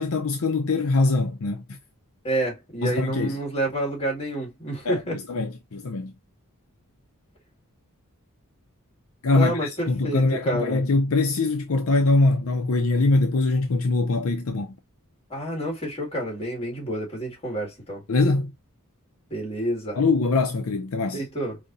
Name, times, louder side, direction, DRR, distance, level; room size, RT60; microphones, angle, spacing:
voice 1, 0.0-1.8 2.8-3.4 4.8-6.1 9.2-14.8 18.1-18.5 20.0-21.2, left 3 dB, 65° left, 0.6 m, -23 dB
voice 2, 2.2-5.2 9.3-10.8 15.3-18.0 19.3-20.0 21.1-21.6, right 1 dB, 25° left, 2.2 m, -29 dB
5.1 x 2.8 x 2.6 m
head